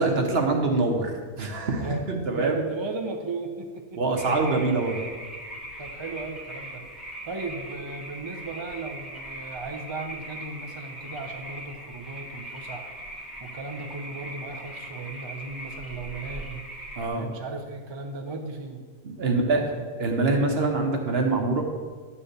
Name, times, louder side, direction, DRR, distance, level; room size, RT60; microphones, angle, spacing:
voice 1, 0.0-2.6 4.0-5.0 17.0-17.3 19.0-21.6, right 3 dB, 55° right, 3 dB, 1.2 m, -25 dB
voice 2, 1.8-4.0 5.8-16.7 17.1-18.9 19.2-19.9, right 3 dB, 25° right, 2 dB, 0.6 m, -36 dB
sound 1, 4.2-17.1, right 1 dB, ahead, 1.6 m, -40 dB
11.0 x 4.2 x 6.6 m, 1.5 s
omnidirectional pair, 1.3 m